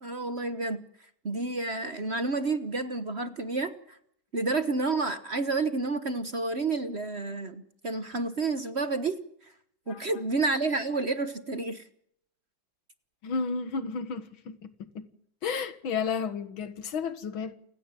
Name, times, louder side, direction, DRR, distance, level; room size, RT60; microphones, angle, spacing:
voice 1, 0.0-4.0 4.3-9.5 9.9-11.9, right 3 dB, 40° right, 1.2 m, -30 dB
voice 2, 13.2-14.7 14.9-15.1 15.4-17.5, left 5 dB, 80° left, 2.4 m, -32 dB
29.0 x 17.0 x 7.6 m
omnidirectional pair, 2.2 m